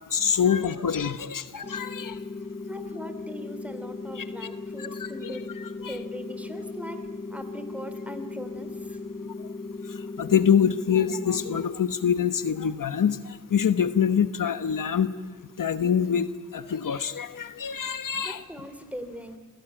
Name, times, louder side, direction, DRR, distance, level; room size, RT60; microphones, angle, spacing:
voice 1, 0.1-2.2 4.2-4.3 4.8-5.3 5.8-6.0 9.9-15.1 15.6-18.4, left 7 dB, 80° left, 12 dB, 1.0 m, -25 dB
sound 1, 1.6-11.6, left 3 dB, 20° left, 2.2 m, -37 dB
voice 2, 2.7-5.5 5.9-7.0 7.3-9.0 18.2-19.4, equal, 5° right, 9 dB, 3.0 m, -40 dB
27.0 x 18.0 x 8.9 m, 1.5 s
wide cardioid pair, 80°, 32 cm